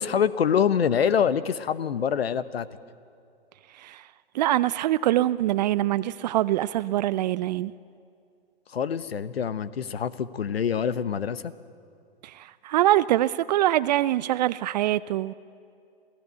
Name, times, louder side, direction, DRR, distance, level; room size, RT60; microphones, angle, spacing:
voice 1, 0.0-2.7 8.7-11.5, left 7 dB, 75° left, 15 dB, 1.1 m, -25 dB
voice 2, 3.7-4.1 4.3-7.7 12.2-15.3, right 14 dB, 45° right, 17 dB, 0.5 m, -24 dB
27.5 x 16.5 x 8.2 m, 2.4 s
hypercardioid pair, 120°, 31 cm